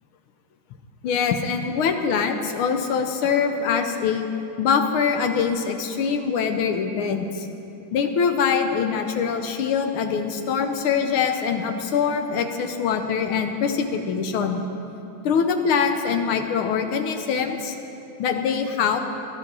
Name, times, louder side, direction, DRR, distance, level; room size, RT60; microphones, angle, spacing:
voice 1, 1.0-4.3 4.6-7.5 7.9-14.6 15.2-17.8 18.2-19.0, left 6 dB, 85° left, 6 dB, 1.7 m, -23 dB
11.5 x 11.0 x 6.2 m, 2.9 s
omnidirectional pair, 2.3 m